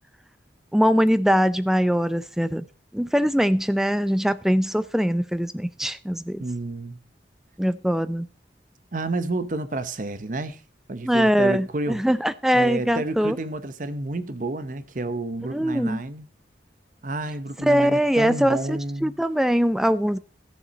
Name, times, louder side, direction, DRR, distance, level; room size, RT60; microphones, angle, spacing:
voice 1, 0.7-2.7 2.9-6.4 7.6-8.3 11.0-13.4 15.5-16.0 17.6-20.2, equal, ahead, 0.4 m, -22 dB
voice 2, 6.4-7.0 8.9-10.6 10.9-12.0 12.5-16.3 17.0-19.1, right 2 dB, 45° right, 0.8 m, -30 dB
14.0 x 6.9 x 5.1 m
head